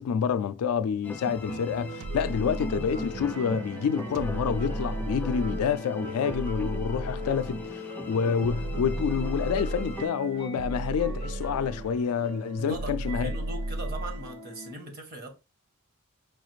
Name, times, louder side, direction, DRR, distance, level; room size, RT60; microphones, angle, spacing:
voice 1, 0.0-13.3, left 7 dB, 90° left, 0.3 m, -28 dB
sound 1, 1.0-10.1, left 1 dB, 10° left, 0.3 m, -39 dB
sound 2, 1.5-14.7, right 1 dB, 65° right, 1.4 m, -41 dB
sound 3, 2.0-3.3 4.1-5.8 6.3-7.7 8.4-10.0 10.6-12.0 12.7-14.3, right 1 dB, 85° right, 0.4 m, -34 dB
voice 2, 12.6-15.3, right 2 dB, 45° right, 0.9 m, -40 dB
4.7 x 2.4 x 3.0 m
head